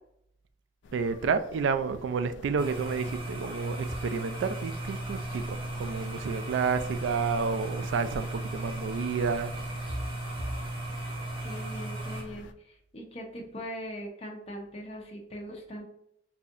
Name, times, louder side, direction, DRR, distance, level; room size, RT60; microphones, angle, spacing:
sound 1, 0.8-12.5, left 2 dB, 85° left, 0.3 m, -48 dB
voice 1, 0.9-9.5, right 5 dB, 90° right, 0.3 m, -30 dB
sound 2, 2.6-12.2, right 1 dB, 30° right, 0.8 m, -36 dB
voice 2, 11.4-15.8, equal, 35° left, 0.7 m, -41 dB
4.0 x 2.7 x 2.5 m
head